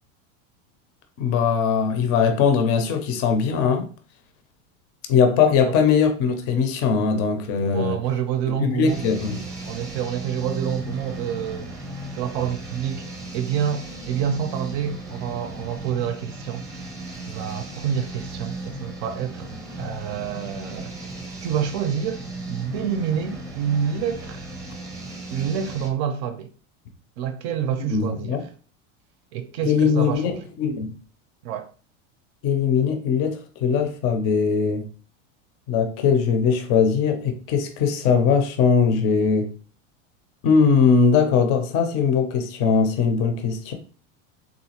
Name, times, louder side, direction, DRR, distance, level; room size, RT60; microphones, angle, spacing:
voice 1, 1.2-3.9 5.1-8.0 8.6-9.4 27.9-28.4 29.6-30.9 32.4-34.8 35.7-39.5 40.4-43.7, left 6 dB, 40° left, 0.5 m, -20 dB
voice 2, 7.6-9.0 9.6-11.7 12.2-16.9 17.3-21.2 21.4-24.4 25.3-26.5 27.2-28.5 29.3-30.4 31.4-31.7, right 8 dB, 55° right, 0.5 m, -28 dB
sound 1, 8.9-25.9, right 2 dB, 10° right, 0.6 m, -36 dB
3.9 x 2.3 x 2.8 m
supercardioid pair, 150°, 37 cm